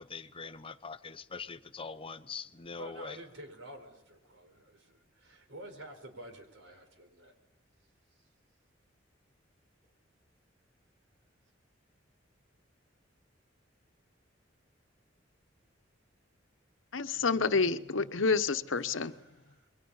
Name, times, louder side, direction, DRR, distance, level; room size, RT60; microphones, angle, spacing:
voice 1, 0.0-3.2, left 4 dB, 30° left, 11 dB, 0.8 m, -43 dB
voice 2, 2.8-7.3 8.2-8.3 18.7-19.7, right 1 dB, 85° right, 6 dB, 4.6 m, -50 dB
voice 3, 16.9-19.1, left 4 dB, 85° left, 11 dB, 1.0 m, -28 dB
27.5 x 22.5 x 5.6 m, 0.81 s
head